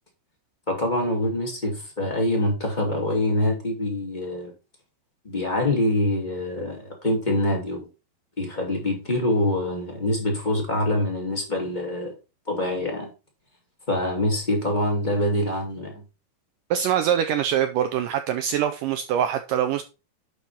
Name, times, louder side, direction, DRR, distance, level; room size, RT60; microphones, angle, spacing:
voice 1, 0.7-4.5 5.2-7.9 8.4-12.1 12.5-13.1 13.9-16.0, left 1 dB, 15° left, 2.0 m, -25 dB
voice 2, 16.7-19.8, right 10 dB, 85° right, 1.9 m, -24 dB
10.5 x 4.7 x 4.2 m
omnidirectional pair, 4.4 m